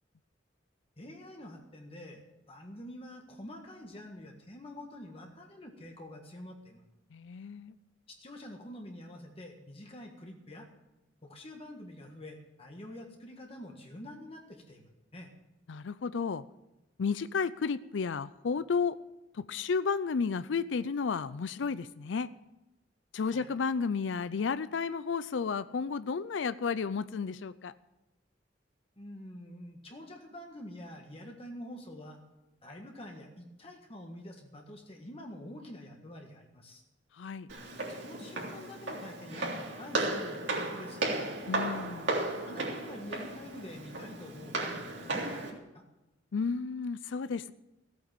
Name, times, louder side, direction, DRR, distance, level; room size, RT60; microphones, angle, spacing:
voice 1, 1.0-6.8 8.1-10.7 11.2-15.3 23.3-23.5 29.0-32.2 32.6-36.8 37.9-41.3 42.4-45.8, left 1 dB, 30° left, 1 dB, 1.7 m, -47 dB
voice 2, 7.1-7.7 15.7-16.4 17.0-19.0 19.3-22.3 23.1-27.7 37.2-37.5 41.5-42.1 46.3-47.5, left 5 dB, 75° left, 15 dB, 0.5 m, -32 dB
Walk footsteps, 37.5-45.5, right 2 dB, 70° right, 3.4 m, -35 dB
16.0 x 8.8 x 7.3 m, 0.97 s
head